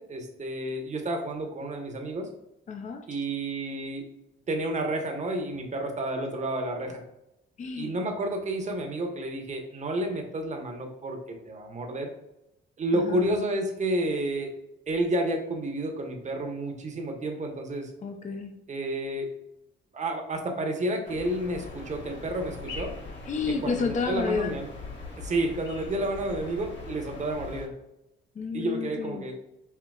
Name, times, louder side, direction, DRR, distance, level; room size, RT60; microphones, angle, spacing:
voice 1, 0.0-2.3 3.1-4.0 4.5-7.0 7.8-12.1 12.8-14.5 14.9-17.9 18.7-19.3 19.9-22.9 23.6-24.7 25.2-27.7 28.5-29.3, right 1 dB, 35° right, 3 dB, 1.1 m, -30 dB
voice 2, 2.7-3.1 7.6-7.9 12.9-13.3 18.0-18.5 23.2-24.5 28.3-29.2, left 5 dB, 40° left, 4 dB, 0.6 m, -31 dB
sound 1, 21.0-27.7, left 3 dB, 65° left, 1.4 m, -41 dB
5.7 x 2.8 x 2.4 m, 0.88 s
cardioid pair, 90°, 20 cm